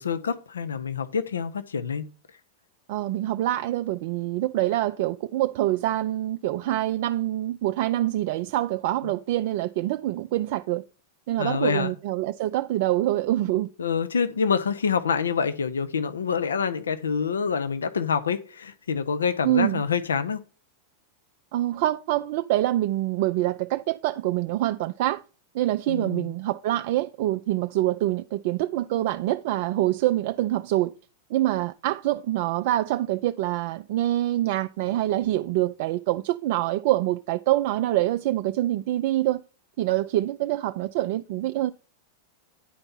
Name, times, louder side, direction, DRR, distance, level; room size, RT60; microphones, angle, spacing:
voice 1, 0.0-2.0 9.0-9.1 11.4-11.9 13.8-20.4 25.9-26.3, left 6 dB, 70° left, 0.6 m, -26 dB
voice 2, 2.9-10.8 11.3-13.7 19.4-19.8 21.5-25.2 25.5-30.9 31.3-39.4 39.8-41.7, right 15 dB, 50° right, 0.3 m, -25 dB
10.0 x 4.4 x 5.3 m
figure-of-eight pair, 90°, 0 cm